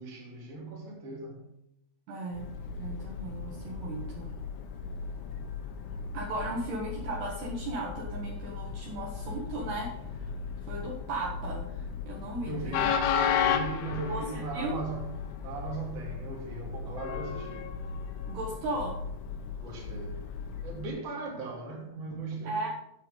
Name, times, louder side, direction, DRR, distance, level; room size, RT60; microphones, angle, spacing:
voice 1, 0.0-1.6 12.4-17.8 19.6-22.6, right 3 dB, 35° right, 3.2 m, -39 dB
voice 2, 2.1-2.5 2.7-4.3 6.1-10.3 10.7-13.0 14.1-14.8 18.3-19.0 22.4-22.7, right 2 dB, 65° right, 3.3 m, -36 dB
Train, 2.3-20.9, left 6 dB, 90° left, 3.8 m, -35 dB
9.2 x 9.0 x 5.3 m
omnidirectional pair, 5.8 m